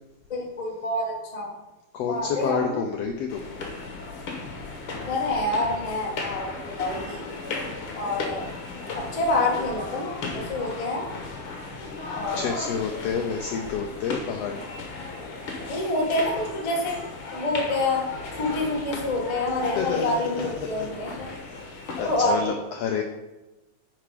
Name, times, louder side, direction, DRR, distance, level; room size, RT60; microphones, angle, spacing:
voice 1, 0.3-1.5 2.0-2.8 4.9-6.5 6.8-7.3 7.9-8.5 8.9-11.0 12.1-12.6 15.7-17.0 17.3-18.1 18.3-21.3 22.0-22.5, left 2 dB, 40° left, -2 dB, 0.5 m, -27 dB
voice 2, 1.9-3.4 7.7-8.1 10.6-10.9 12.4-14.6 19.8-20.1 20.6-20.9 21.5-21.6 22.0-23.0, left 6 dB, 90° left, 4 dB, 1.4 m, -29 dB
sound 1, 3.3-22.2, left 3 dB, 55° left, 1.7 m, -36 dB
9.8 x 4.6 x 4.9 m, 1.0 s
omnidirectional pair, 3.6 m